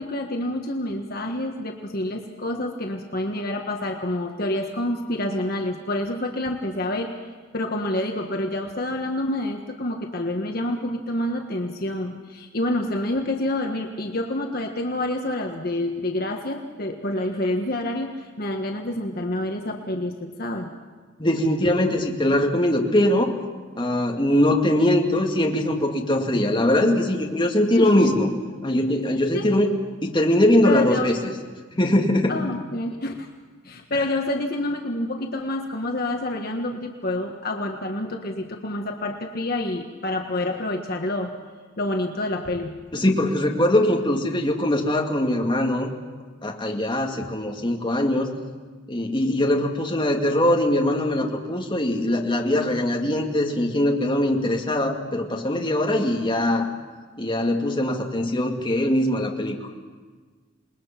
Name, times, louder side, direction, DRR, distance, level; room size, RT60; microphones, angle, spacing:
voice 1, 0.0-7.1 7.5-20.7 27.8-28.3 29.3-29.5 30.6-31.1 32.3-33.3 33.6-41.3 41.8-42.7, left 1 dB, 50° left, 2 dB, 1.5 m, -28 dB
voice 2, 21.2-23.3 23.8-28.3 28.6-29.7 30.0-31.2 31.8-32.4 33.9-34.0 42.9-46.0 46.4-48.4 48.9-56.7 57.2-59.6, left 1 dB, 25° left, 0 dB, 2.2 m, -21 dB
28.0 x 21.0 x 5.9 m, 1.5 s
head